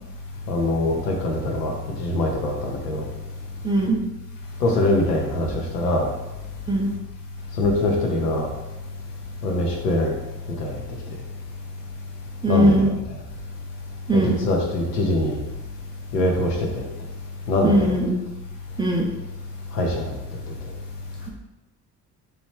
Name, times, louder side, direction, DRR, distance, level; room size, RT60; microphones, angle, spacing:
voice 1, 0.5-1.7 2.0-3.0 4.6-6.1 7.6-8.5 9.4-10.1 10.6-10.7 12.5-12.9 14.1-15.4 16.1-16.8 17.5-17.9 19.7-20.1, left 1 dB, 85° left, 0 dB, 0.6 m, -23 dB
voice 2, 3.6-4.0 6.7-6.9 12.4-12.9 14.1-14.4 17.6-18.2 18.8-19.1, right 1 dB, 10° right, -2 dB, 0.3 m, -19 dB
3.0 x 2.3 x 3.0 m, 1.0 s
figure-of-eight pair, 45°, 46 cm